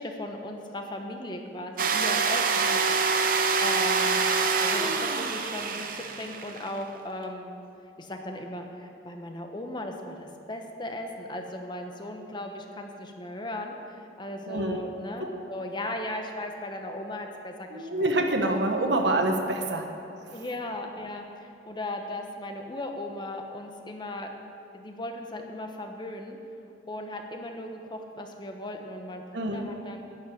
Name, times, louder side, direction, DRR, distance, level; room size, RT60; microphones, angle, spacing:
voice 1, 0.0-2.9 3.2-4.2 4.6-7.5 8.0-18.1 18.8-19.0 20.3-24.3 24.7-26.4 26.9-30.0, left 1 dB, 25° left, 3 dB, 1.1 m, -37 dB
sound 1, 1.8-6.8, right 4 dB, 50° right, 0.8 m, -25 dB
voice 2, 14.5-14.8 15.2-15.3 17.7-19.9 20.2-20.4 29.3-29.6, right 2 dB, 80° right, 3 dB, 1.3 m, -26 dB
11.0 x 7.3 x 9.5 m, 2.6 s
head